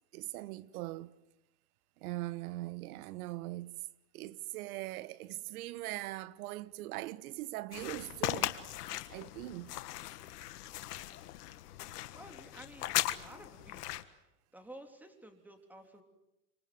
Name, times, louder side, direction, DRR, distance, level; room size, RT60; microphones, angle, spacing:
voice 1, 0.1-1.1 2.0-3.8 4.1-8.6 9.1-9.8, right 17 dB, 65° right, 1.2 m, -41 dB
sound 1, 7.7-14.0, left 14 dB, 80° left, 1.7 m, -38 dB
voice 2, 11.7-14.0 14.5-16.0, right 1 dB, 5° right, 3.4 m, -53 dB
27.5 x 25.5 x 7.8 m
supercardioid pair, 125°, 46 cm